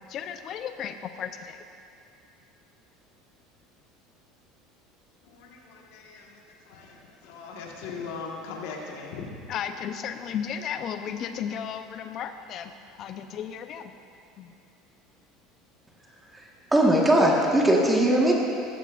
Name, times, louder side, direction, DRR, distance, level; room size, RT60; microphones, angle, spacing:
voice 1, 0.0-1.6 9.5-12.7 13.0-13.9 14.4-14.5, left 8 dB, 50° left, 9 dB, 0.7 m, -34 dB
voice 2, 5.2-9.4, left 4 dB, 75° left, -1 dB, 1.6 m, -40 dB
voice 3, 16.7-18.3, right 1 dB, 10° right, -2 dB, 1.5 m, -20 dB
15.0 x 12.5 x 2.6 m, 2.6 s
supercardioid pair, 110°, 0 cm